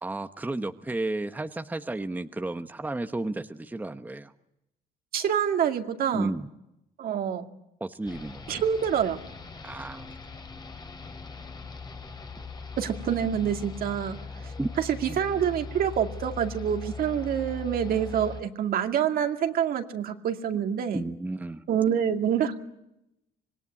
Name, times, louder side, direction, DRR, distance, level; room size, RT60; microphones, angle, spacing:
voice 1, 0.0-4.3 6.1-6.5 7.8-8.6 9.6-10.2 14.6-14.7 20.9-21.6, right 2 dB, 10° right, 8 dB, 1.0 m, -32 dB
voice 2, 5.1-6.3 7.0-7.5 8.5-9.2 12.8-14.2 14.4-21.0 21.7-22.6, right 8 dB, 60° right, 5 dB, 2.3 m, -27 dB
sound 1, 8.1-18.4, left 4 dB, 25° left, 2.5 m, -40 dB
25.5 x 19.5 x 9.7 m, 0.86 s
cardioid pair, 110°, 17 cm